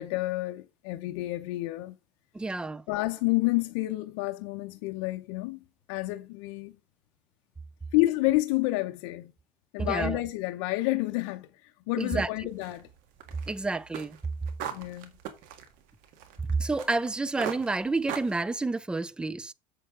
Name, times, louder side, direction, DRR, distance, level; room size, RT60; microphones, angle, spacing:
voice 1, 0.0-2.0 2.9-5.6 5.9-6.8 7.9-9.3 9.7-12.9 14.7-15.1, left 19 dB, 80° left, 0.7 m, -29 dB
voice 2, 2.3-2.8 9.8-10.2 12.0-12.3 13.5-14.2 16.6-19.5, right 3 dB, 5° right, 0.3 m, -29 dB
sound 1, 12.5-17.1 17.4-18.4, right 9 dB, 65° right, 1.8 m, -40 dB
7.7 x 6.8 x 3.7 m
cardioid pair, 145°, 15 cm